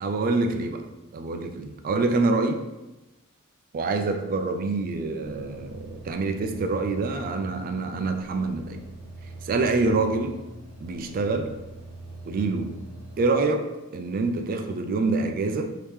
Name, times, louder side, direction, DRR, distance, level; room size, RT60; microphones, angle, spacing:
voice 1, 0.0-0.9 1.1-2.7 3.7-8.8 9.4-10.4 10.8-11.6 12.3-12.8 13.2-15.7, right 3 dB, 40° right, 6 dB, 0.3 m, -26 dB
sound 1, 5.2-13.2, right 2 dB, 65° right, 0.8 m, -42 dB
3.4 x 2.8 x 3.1 m, 1.0 s
head